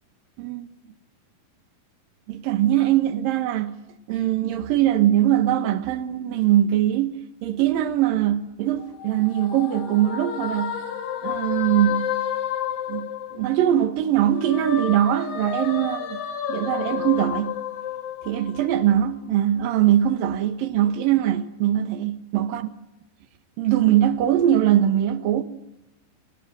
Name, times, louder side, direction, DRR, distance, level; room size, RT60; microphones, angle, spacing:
voice 1, 2.3-3.8 4.1-10.8 11.2-12.1 12.9-16.2 16.5-17.6 18.2-22.7 23.6-25.4, right 11 dB, 90° right, 3.1 m, -22 dB
sound 1, 8.8-13.8 14.2-18.9, left 9 dB, 80° left, 3.6 m, -31 dB
29.0 x 20.0 x 7.7 m
omnidirectional pair, 3.9 m